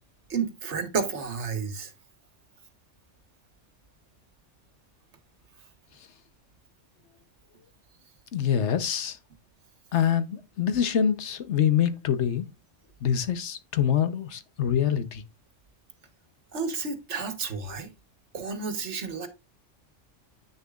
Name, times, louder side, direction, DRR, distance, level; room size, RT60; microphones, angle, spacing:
voice 1, 0.3-1.9 16.5-17.9 18.3-19.3, right 5 dB, 65° right, 1.4 m, -31 dB
voice 2, 8.3-9.2 9.9-12.5 13.0-15.2, left 8 dB, 65° left, 1.1 m, -25 dB
9.2 x 6.6 x 2.4 m
omnidirectional pair, 1.3 m